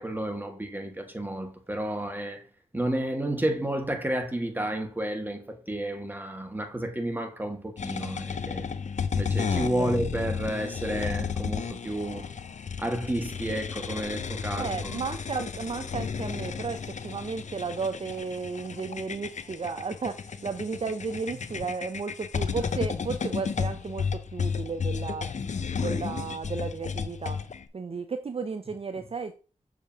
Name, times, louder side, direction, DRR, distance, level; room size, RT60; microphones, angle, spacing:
voice 1, 0.0-2.5 2.7-8.7 9.1-12.3 12.8-15.0, right 1 dB, 15° right, 1.6 m, -31 dB
sound 1, 7.8-27.6, left 6 dB, 60° left, 0.6 m, -33 dB
voice 2, 14.5-25.3 25.7-27.4 27.7-29.3, right 4 dB, 45° right, 0.5 m, -34 dB
6.6 x 5.0 x 2.8 m
cardioid pair, 45°, 14 cm